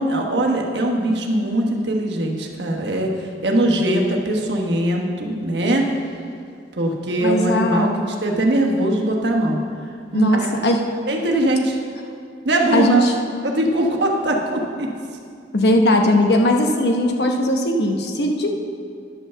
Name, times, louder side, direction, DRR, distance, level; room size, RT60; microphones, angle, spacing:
voice 1, 0.0-5.9 6.7-9.6 10.1-10.5 11.1-11.8 12.4-13.0 13.4-14.9, right 1 dB, 70° right, 1 dB, 1.2 m, -21 dB
voice 2, 7.2-8.0 10.1-10.8 12.7-13.1 15.5-18.5, left 1 dB, 60° left, 2 dB, 1.0 m, -18 dB
11.0 x 5.6 x 6.8 m, 2.3 s
head